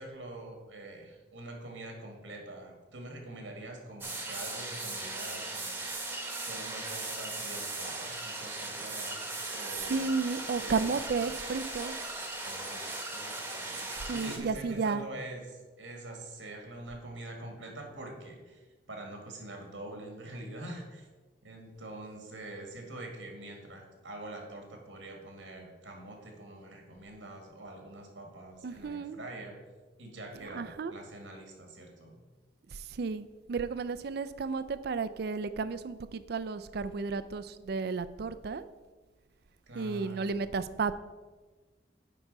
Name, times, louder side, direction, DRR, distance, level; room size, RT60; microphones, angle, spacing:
voice 1, 0.0-5.8 6.4-10.0 10.6-11.0 12.5-18.6 18.9-21.1 21.4-29.6 30.0-32.2 39.7-40.4, right 2 dB, 90° right, 2 dB, 1.8 m, -45 dB
sound 1, 4.0-14.4, right 2 dB, 10° right, 1.0 m, -38 dB
voice 2, 9.8-12.0 13.7-15.1 28.6-29.2 30.5-30.9 32.7-38.6 39.7-41.0, right 4 dB, 55° right, 13 dB, 0.4 m, -33 dB
9.3 x 3.9 x 5.4 m, 1.3 s
head